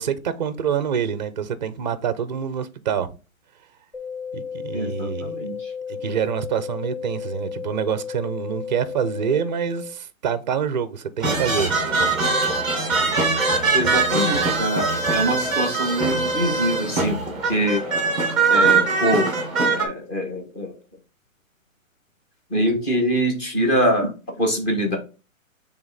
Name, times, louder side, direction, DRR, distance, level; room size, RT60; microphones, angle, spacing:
voice 1, 0.0-3.1 4.3-5.3 5.9-11.7, right 8 dB, 35° right, 0.5 m, -26 dB
sound 1, 3.9-9.9, left 6 dB, 50° left, 2.5 m, -33 dB
voice 2, 4.7-5.7 13.7-17.8 18.5-19.3 19.7-20.7 22.5-25.0, equal, 15° left, 1.3 m, -24 dB
sound 2, 11.2-19.8, right 4 dB, ahead, 0.7 m, -22 dB
6.9 x 3.5 x 4.0 m
hypercardioid pair, 160°, 42 cm